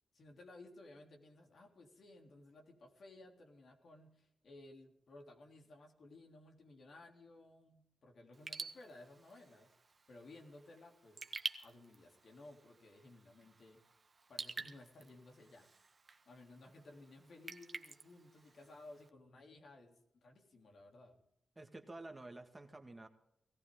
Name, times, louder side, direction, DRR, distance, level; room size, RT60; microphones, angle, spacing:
voice 1, 0.1-9.7 10.1-11.2 11.6-13.8 14.3-15.7 16.2-21.2, left 2 dB, 60° left, 2 dB, 3.3 m, -57 dB
Raindrop / Drip, 8.3-19.1, right 4 dB, 40° right, 1.5 m, -50 dB
voice 2, 21.6-23.1, right 2 dB, 20° right, 5 dB, 2.0 m, -50 dB
19.0 x 15.0 x 3.8 m, 0.79 s
cardioid pair, 65°, 0 cm